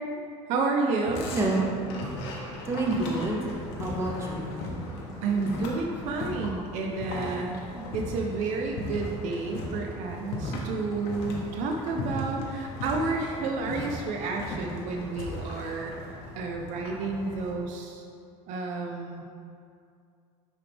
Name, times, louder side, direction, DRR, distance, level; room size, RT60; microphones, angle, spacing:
voice 1, 0.5-1.2 5.2-7.6 7.9-15.9 16.3-18.0 18.5-19.2, right 3 dB, 60° right, 1 dB, 0.6 m, -30 dB
sound 1, 1.0-17.5, left 1 dB, 80° left, 1.2 m, -37 dB
voice 2, 1.3-1.7 2.6-4.6 7.7-7.9, right 2 dB, 20° right, -2 dB, 0.8 m, -29 dB
9.9 x 3.4 x 3.4 m, 2.4 s
cardioid pair, 170°, 14 cm